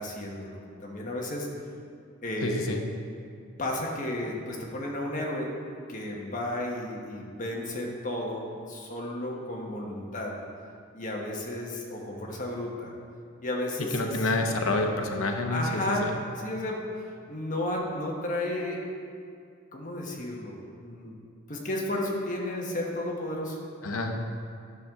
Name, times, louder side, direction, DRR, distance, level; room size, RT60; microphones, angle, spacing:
voice 1, 0.0-1.5 2.2-2.8 3.6-5.5 5.9-10.3 10.9-12.9 13.4-14.6 15.1-15.2 15.5-16.1 16.4-18.8 19.7-21.2 21.5-23.6, left 1 dB, 40° left, -1 dB, 1.2 m, -33 dB
voice 2, 2.4-2.8 13.9-16.1 23.8-24.2, left 2 dB, 85° left, 3 dB, 0.9 m, -28 dB
11.0 x 6.8 x 3.6 m, 2.3 s
head